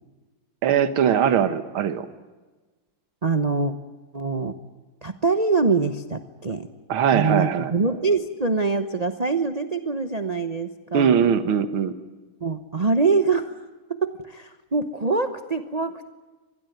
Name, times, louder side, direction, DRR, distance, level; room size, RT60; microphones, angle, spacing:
voice 1, 0.6-2.1 6.9-7.7 10.9-11.9, right 8 dB, 75° right, 11 dB, 2.2 m, -21 dB
voice 2, 3.2-3.7 4.1-4.5 5.0-6.7 7.1-11.3 12.4-13.6 13.9-16.1, right 4 dB, 35° right, 8 dB, 0.6 m, -24 dB
26.0 x 20.5 x 9.3 m, 1.3 s
omnidirectional pair, 2.3 m